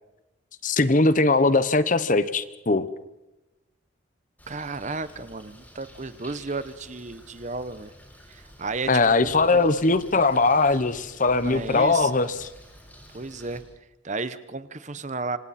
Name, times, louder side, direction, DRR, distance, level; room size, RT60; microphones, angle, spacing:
voice 1, 0.6-2.9 8.9-12.5, left 3 dB, 40° left, 14 dB, 1.0 m, -21 dB
Bird, 4.4-13.6, equal, 10° left, 7.2 m, -49 dB
voice 2, 4.5-7.9 8.3-8.9 9.2-9.7 11.3-12.2 13.1-13.6 14.0-15.4, right 3 dB, 35° right, 13 dB, 0.9 m, -33 dB
27.0 x 26.0 x 4.3 m, 0.98 s
head